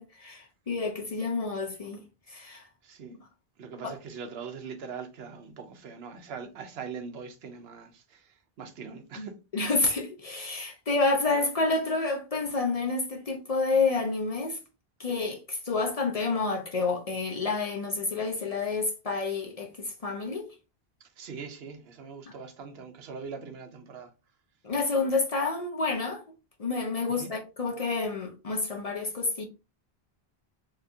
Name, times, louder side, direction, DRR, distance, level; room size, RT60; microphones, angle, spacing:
voice 1, 0.0-2.0 2.3-2.6 3.8-4.0 9.2-9.3 9.5-14.6 15.0-20.5 24.6-26.2 26.6-29.4, left 3 dB, 45° left, 0.6 m, -29 dB
voice 2, 2.8-3.2 3.6-9.4 21.2-24.1 27.1-27.3, right 5 dB, 80° right, 0.9 m, -42 dB
3.5 x 2.8 x 2.6 m
omnidirectional pair, 1.0 m